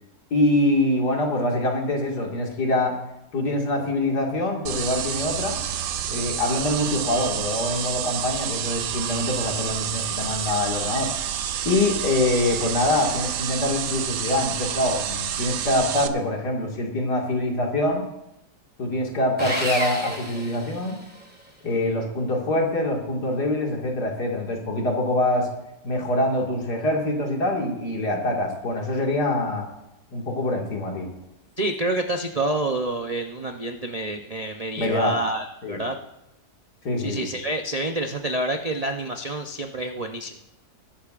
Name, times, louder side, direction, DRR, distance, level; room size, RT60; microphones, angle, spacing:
voice 1, 0.3-3.0 3.3-5.6 6.1-11.1 11.6-18.1 18.8-21.0 21.6-25.5 25.8-29.7 30.1-31.1 34.8-35.2 35.6-35.8 36.8-37.3, left 1 dB, 75° left, -1 dB, 2.7 m, -24 dB
sound 1, 4.7-16.1, right 9 dB, 90° right, 1.3 m, -29 dB
Sawing, 19.4-21.3, right 1 dB, 5° right, 1.7 m, -30 dB
voice 2, 31.6-36.0 37.0-40.4, right 1 dB, 55° right, 4 dB, 0.4 m, -28 dB
20.0 x 11.5 x 2.5 m, 0.89 s
omnidirectional pair, 1.8 m